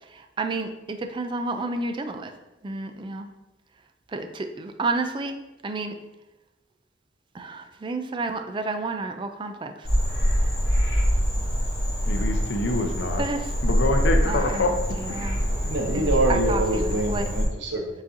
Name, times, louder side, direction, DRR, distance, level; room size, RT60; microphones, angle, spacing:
voice 1, 0.0-2.3 2.6-3.3 4.1-5.4 5.6-5.9 7.3-9.9 13.2-13.5 14.2-15.4 15.9-17.3, right 3 dB, 25° right, 6 dB, 0.3 m, -31 dB
Frog, 9.8-17.4, equal, 20° left, 1.3 m, -25 dB
voice 2, 12.0-13.3 13.6-14.8 15.1-15.2, left 2 dB, 70° left, 5 dB, 0.6 m, -26 dB
voice 3, 15.4-18.0, right 1 dB, 70° right, 3 dB, 0.7 m, -26 dB
5.1 x 4.0 x 2.6 m, 1.0 s
head